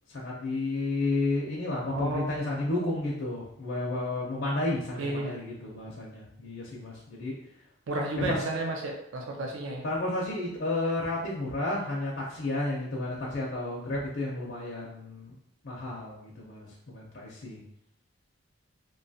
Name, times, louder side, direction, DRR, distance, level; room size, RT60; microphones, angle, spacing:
voice 1, 0.1-7.3 8.2-8.5 9.8-15.3 15.6-17.6, left 2 dB, 55° left, -4 dB, 0.5 m, -32 dB
voice 2, 1.9-2.3 5.0-5.4 7.9-9.8, right 2 dB, 60° right, 1 dB, 0.4 m, -32 dB
2.7 x 2.2 x 2.6 m, 0.72 s
head